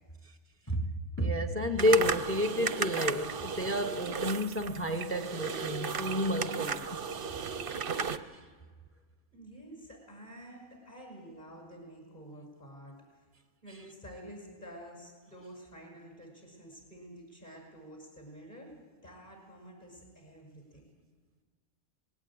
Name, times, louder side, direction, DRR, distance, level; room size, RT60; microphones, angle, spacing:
voice 1, 0.7-7.0, left 1 dB, 10° left, 0.9 m, -30 dB
sound 1, 1.8-8.2, right 6 dB, 50° right, 0.8 m, -35 dB
voice 2, 9.3-13.2 13.6-18.7 19.0-21.0, right 1 dB, 30° left, 5.9 m, -49 dB
20.5 x 17.5 x 8.7 m
omnidirectional pair, 1.5 m